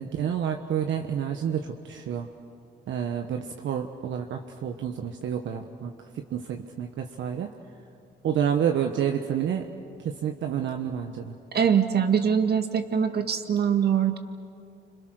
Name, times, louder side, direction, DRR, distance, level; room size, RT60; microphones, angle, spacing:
voice 1, 0.0-2.3 2.9-5.9 6.3-7.5 8.2-9.7 10.0-11.3, right 8 dB, 70° right, 4 dB, 1.3 m, -29 dB
voice 2, 11.5-14.2, right 7 dB, 55° right, 7 dB, 2.0 m, -23 dB
30.0 x 27.0 x 6.5 m, 2.4 s
cardioid pair, 90°, 20 cm